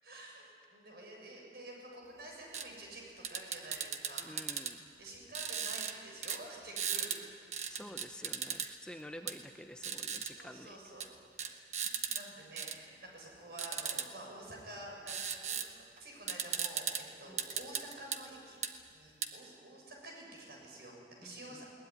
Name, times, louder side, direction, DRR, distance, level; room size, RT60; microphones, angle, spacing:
voice 1, 0.0-4.6 5.0-7.4 8.9-9.3 10.3-11.1 11.5-16.9 17.2-18.6 18.9-21.7, right 1 dB, 60° right, -1 dB, 7.1 m, -50 dB
sound 1, 2.5-2.7 3.2-4.7 5.3-5.9 6.2-6.4 6.8-7.2 7.5-8.7 9.3-9.4 9.8-10.3 11.0-11.1 11.4-12.2 12.6-12.8 13.6-14.1 15.1-15.7 16.0-16.1 16.3-17.0 17.4-18.2 18.6-18.7 19.2-19.3, right 7 dB, 40° right, 1.2 m, -37 dB
voice 2, 4.2-4.9 7.7-10.8 11.4-11.7 17.3-17.4 21.2-21.6, equal, 5° left, 5 dB, 0.6 m, -50 dB
21.0 x 19.0 x 9.9 m, 2.2 s
head